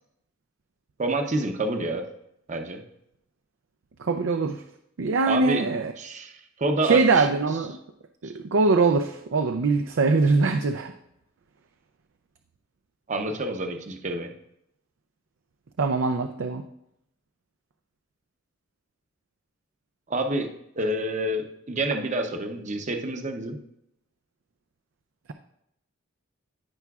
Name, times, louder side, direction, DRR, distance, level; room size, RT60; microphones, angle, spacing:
voice 1, 1.0-2.0 2.5-2.8 5.3-5.7 6.0-7.3 8.2-8.3 13.1-14.3 20.1-20.5 20.8-23.6, right 2 dB, 40° right, 5 dB, 0.7 m, -28 dB
voice 2, 4.0-4.6 5.0-5.9 6.8-7.8 8.2-10.9 15.8-16.6, right 3 dB, 70° right, 7 dB, 0.5 m, -22 dB
15.0 x 5.6 x 2.4 m, 0.77 s
head